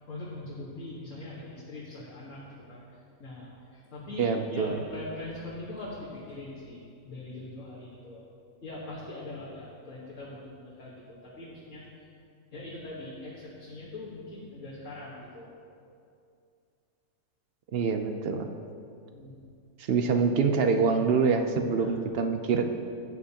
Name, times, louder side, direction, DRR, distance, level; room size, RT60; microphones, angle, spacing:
voice 1, 0.1-2.4 2.7-2.8 3.2-8.2 8.6-12.1 12.5-15.5 19.1-19.4 21.8-22.0, left 2 dB, 60° left, -7 dB, 1.8 m, -42 dB
voice 2, 4.2-4.8 17.7-18.5 19.9-22.7, right 5 dB, 60° right, 6 dB, 0.6 m, -25 dB
13.5 x 9.1 x 2.9 m, 2.5 s
omnidirectional pair, 1.5 m